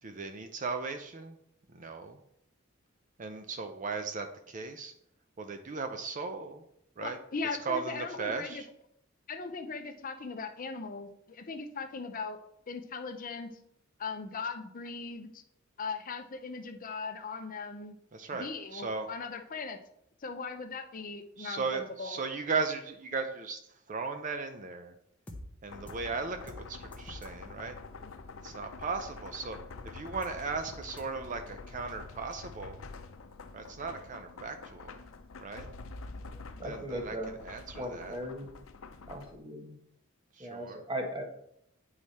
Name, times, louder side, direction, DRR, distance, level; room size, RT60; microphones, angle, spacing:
voice 1, 0.0-1.4 1.7-2.2 3.2-4.9 5.4-6.6 7.0-7.2 7.6-8.7 18.1-19.1 21.4-23.6 23.9-24.9 25.6-27.8 28.4-29.6 29.8-32.9 33.5-35.0 35.4-35.7 36.5-38.2 40.3-40.8, right 4 dB, 40° right, 7 dB, 0.5 m, -37 dB
voice 2, 7.0-8.6 9.3-12.4 12.7-13.5 14.0-15.4 15.8-17.9 18.3-19.8 20.2-22.2, left 4 dB, 45° left, 7 dB, 0.6 m, -39 dB
sound 1, 25.3-25.4 25.9-26.0 26.5-26.6 26.9-27.3 30.1-30.3 30.7-31.0, left 1 dB, 5° left, 0.9 m, -46 dB
sound 2, 25.7-39.4, left 3 dB, 80° left, 0.6 m, -47 dB
voice 3, 36.6-37.4 37.8-38.5 39.1-39.7 40.4-41.2, equal, 25° right, 3 dB, 1.3 m, -38 dB
9.0 x 4.8 x 4.2 m, 0.75 s
head